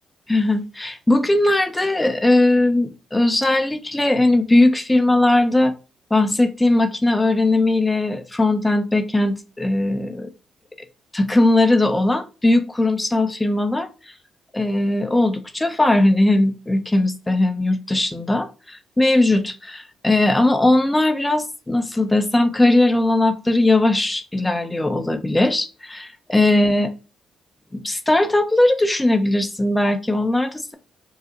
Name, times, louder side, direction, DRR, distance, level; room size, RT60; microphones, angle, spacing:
voice 1, 0.3-5.7 6.1-10.3 11.1-13.9 14.5-26.9 27.7-30.7, left 2 dB, 10° left, 0.6 m, -19 dB
4.7 x 2.1 x 2.8 m
cardioid pair, 90°, 0 cm